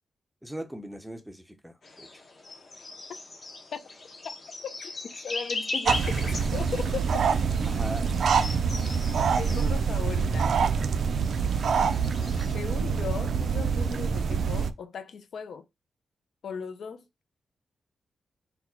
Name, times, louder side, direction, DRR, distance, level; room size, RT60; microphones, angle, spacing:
voice 1, 0.4-2.2 7.7-8.1, equal, ahead, 0.5 m, -39 dB
sound 1, 1.8-12.5, left 2 dB, 40° left, 0.9 m, -39 dB
voice 2, 5.2-7.2 9.4-10.6 12.5-15.6 16.4-17.0, left 6 dB, 65° left, 0.5 m, -37 dB
sound 2, 5.8-14.7, right 6 dB, 60° right, 0.3 m, -26 dB
4.1 x 2.2 x 4.3 m
wide cardioid pair, 170°, 0 cm